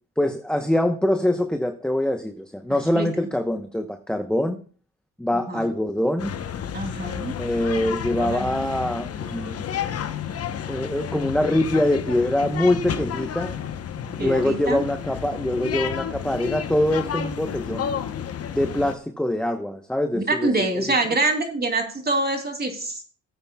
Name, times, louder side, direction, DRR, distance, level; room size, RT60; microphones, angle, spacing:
voice 1, 0.2-4.6 5.2-6.3 7.4-9.8 10.7-13.6 14.2-17.9 18.5-20.8, left 1 dB, 5° left, 6 dB, 0.9 m, -24 dB
voice 2, 2.7-3.3 5.3-5.7 6.7-7.3 8.1-8.7 14.2-14.8 20.1-23.0, right 2 dB, 30° right, 3 dB, 2.9 m, -26 dB
sound 1, 6.2-18.9, left 8 dB, 50° left, 0.9 m, -31 dB
18.0 x 8.8 x 2.3 m, 0.41 s
cardioid pair, 90°, 30 cm